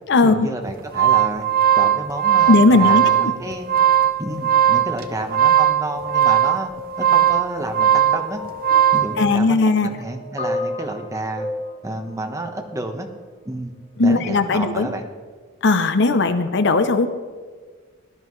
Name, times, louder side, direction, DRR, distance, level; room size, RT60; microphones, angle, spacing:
voice 1, 0.2-1.5 1.8-3.7 4.2-6.7 7.0-8.4 8.9-9.6 9.8-11.5 11.8-13.1 13.4-13.7 14.0-15.1, right 1 dB, 15° right, 4 dB, 1.1 m, -30 dB
sound 1, 0.7-9.1, right 10 dB, 45° right, 0.8 m, -18 dB
voice 2, 2.5-3.3 9.2-9.9 14.0-14.9 15.6-17.1, left 3 dB, 55° left, 10 dB, 0.7 m, -17 dB
sound 2, 8.1-13.2 14.1-14.3, left 1 dB, 30° left, 1.7 m, -33 dB
18.0 x 11.5 x 3.2 m, 1.5 s
head